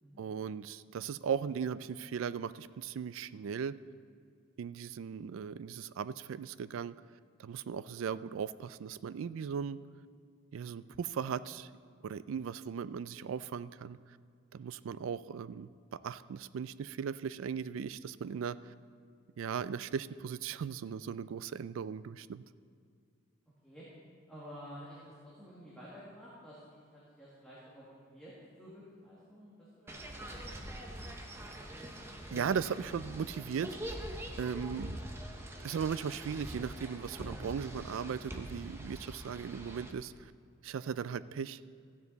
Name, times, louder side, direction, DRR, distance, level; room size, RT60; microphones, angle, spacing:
voice 1, 0.2-3.8 4.6-6.9 7.4-9.8 10.5-11.7 12.0-14.0 14.5-18.7 19.4-22.4 32.3-33.9 34.4-35.0 35.6-40.3 40.6-41.6, right 7 dB, 80° right, 16 dB, 0.3 m, -37 dB
voice 2, 24.3-28.3 28.6-31.5, equal, 5° left, -9 dB, 1.8 m, -52 dB
sound 1, 29.9-39.9, right 1 dB, 10° right, 0.8 m, -44 dB
14.0 x 9.6 x 4.0 m, 2.2 s
head